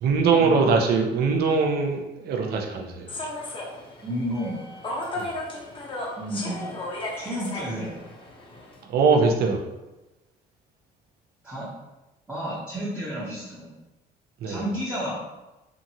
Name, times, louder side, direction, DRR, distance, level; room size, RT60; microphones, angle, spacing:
voice 1, 0.0-3.1 5.2-5.3 8.9-9.6 14.4-14.6, right 4 dB, 70° right, 3 dB, 0.5 m, -22 dB
Human voice / Subway metro underground, 3.1-8.8, left 1 dB, 30° left, 0.7 m, -35 dB
voice 2, 4.0-4.6 6.2-6.6 7.2-7.9 11.4-11.7 12.3-13.7 14.5-15.2, equal, 5° right, -10 dB, 0.8 m, -31 dB
2.8 x 2.5 x 2.7 m, 1.0 s
cardioid pair, 110°, 17 cm